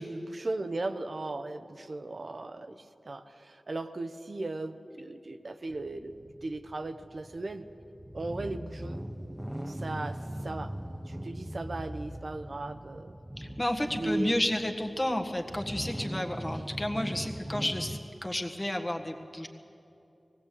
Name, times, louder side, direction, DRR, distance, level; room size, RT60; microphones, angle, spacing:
voice 1, 0.0-7.7 8.1-9.0 9.7-10.8 11.1-13.2 13.9-14.4, right 2 dB, 60° right, 8 dB, 0.8 m, -37 dB
sound 1, 5.7-18.0, equal, 10° right, 0.8 m, -40 dB
voice 2, 13.4-19.5, left 1 dB, 20° left, 3 dB, 1.6 m, -31 dB
19.5 x 17.5 x 8.5 m, 2.9 s
wide cardioid pair, 75°, 0 cm